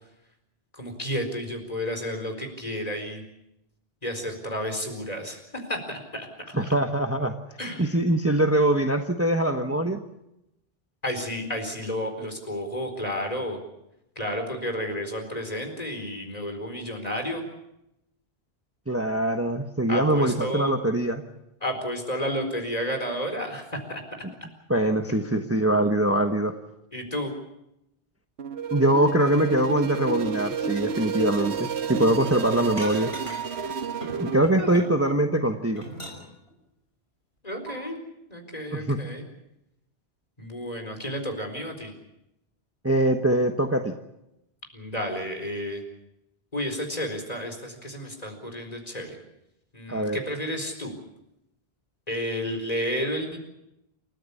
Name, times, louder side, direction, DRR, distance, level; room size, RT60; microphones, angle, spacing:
voice 1, 0.7-3.2 4.0-6.3 7.6-8.0 11.0-13.6 14.2-17.5 19.9-20.8 21.6-24.0 26.9-27.3 34.6-34.9 37.4-38.0 38.3-39.2 40.4-41.9 44.7-45.8 46.5-49.2 49.7-50.9 52.1-53.4, equal, 40° left, 5 dB, 4.5 m, -31 dB
voice 2, 6.5-7.4 7.8-10.0 18.9-21.2 24.7-26.5 28.7-33.1 34.2-35.8 38.7-39.1 42.8-43.9 49.9-50.2, right 1 dB, 15° right, 5 dB, 1.2 m, -23 dB
sound 1, 28.4-34.4, right 5 dB, 80° right, 1.4 m, -30 dB
sound 2, 32.8-33.6 34.0-35.0 35.4-36.5 37.7-37.8, equal, 75° left, 6.0 m, -40 dB
29.0 x 14.5 x 8.5 m, 0.86 s
omnidirectional pair, 1.1 m